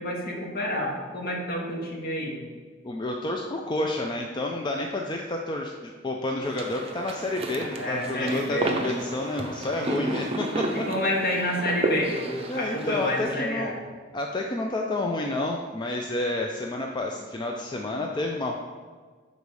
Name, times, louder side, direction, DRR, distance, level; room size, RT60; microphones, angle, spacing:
voice 1, 0.0-2.3 7.8-8.9 9.7-10.1 10.9-13.7, equal, 55° left, -2 dB, 1.5 m, -29 dB
voice 2, 2.8-10.9 12.5-13.7 14.1-18.5, left 2 dB, 25° left, 1 dB, 0.4 m, -30 dB
sound 1, 6.4-13.2, right 1 dB, 30° right, 0.6 m, -32 dB
6.9 x 4.0 x 4.8 m, 1.5 s
head